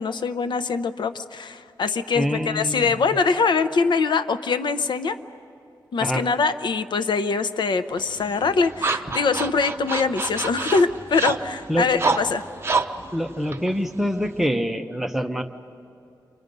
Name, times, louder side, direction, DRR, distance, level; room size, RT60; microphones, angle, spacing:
voice 1, 0.0-5.2 5.9-12.4, left 4 dB, 75° left, 12 dB, 0.7 m, -23 dB
voice 2, 2.1-2.9 6.0-6.2 11.7-11.9 13.1-15.4, equal, 5° right, 4 dB, 0.9 m, -25 dB
sound 1, 8.0-14.5, right 4 dB, 30° right, 0.7 m, -29 dB
29.5 x 25.5 x 5.3 m, 2.6 s
wide cardioid pair, 160°, 8 cm